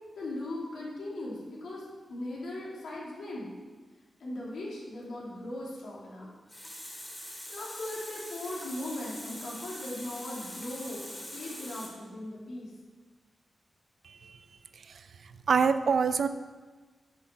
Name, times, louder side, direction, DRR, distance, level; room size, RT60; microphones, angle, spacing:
voice 1, 0.1-3.5 4.2-6.3 7.5-12.7, left 1 dB, 80° left, -4 dB, 2.5 m, -39 dB
Water tap faucet, 6.2-11.9, equal, 10° left, 2.0 m, -43 dB
voice 2, 14.0-14.4 14.9-15.0 15.5-16.3, right 5 dB, 60° right, 11 dB, 0.5 m, -25 dB
9.2 x 6.1 x 5.6 m, 1.4 s
wide cardioid pair, 160°, 0 cm